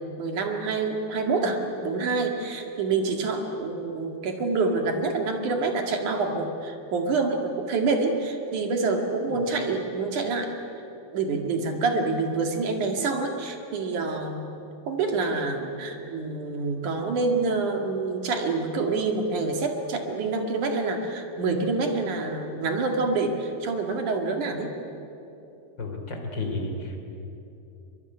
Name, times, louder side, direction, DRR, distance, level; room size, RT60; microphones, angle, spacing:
voice 1, 0.2-10.5 11.1-14.5 14.9-24.7, right 3 dB, 60° right, 4 dB, 3.4 m, -27 dB
voice 2, 25.8-27.0, left 2 dB, 30° left, 3 dB, 3.5 m, -32 dB
23.5 x 23.5 x 9.8 m, 2.9 s
omnidirectional pair, 4.1 m